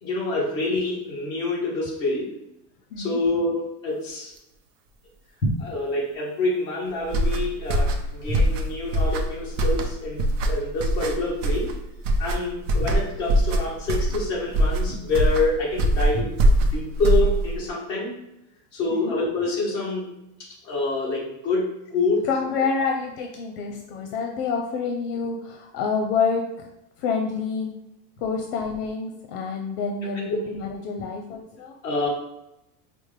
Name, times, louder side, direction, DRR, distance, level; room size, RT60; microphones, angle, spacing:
voice 1, 0.0-2.3 3.0-4.3 5.4-11.7 12.2-18.1 18.7-20.1 20.4-22.3 31.8-32.1, left 2 dB, 10° left, -9 dB, 0.4 m, -27 dB
voice 2, 2.9-3.2 18.9-19.1 22.2-26.7 27.0-27.7 28.2-31.7, left 5 dB, 65° left, 3 dB, 0.6 m, -28 dB
sound 1, 7.0-17.7, right 1 dB, 55° right, 0.5 m, -23 dB
5.0 x 2.1 x 3.2 m, 0.87 s
supercardioid pair, 180°, 49 cm